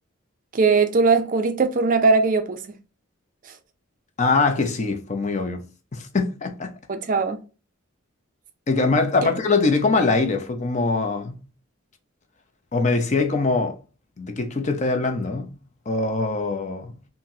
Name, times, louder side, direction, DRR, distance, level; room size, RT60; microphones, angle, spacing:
voice 1, 0.5-2.6 6.9-7.4 9.2-9.3, right 4 dB, 40° right, 0.4 m, -20 dB
voice 2, 4.2-5.6 5.9-6.7 8.7-11.4 12.7-13.8 14.2-15.5 15.9-16.9, left 3 dB, 35° left, 0.5 m, -22 dB
4.1 x 2.1 x 2.6 m
head